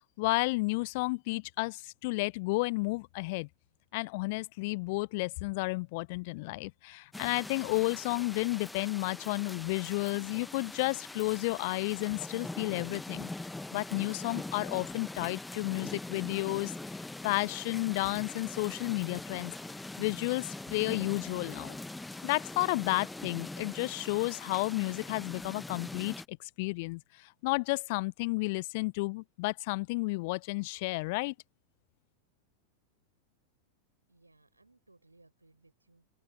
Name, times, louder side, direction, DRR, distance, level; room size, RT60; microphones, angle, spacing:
voice 1, 0.2-3.5 3.9-13.3 13.7-16.7 17.2-19.5 20.0-21.8 22.2-31.3, left 25 dB, 50° left, 0.6 m, -32 dB
sound 1, 7.1-26.2, left 2 dB, 5° left, 1.1 m, -43 dB
voice 2, 34.1-36.1, right 2 dB, 85° right, 4.4 m, -63 dB
open air
figure-of-eight pair, 90°, 0 cm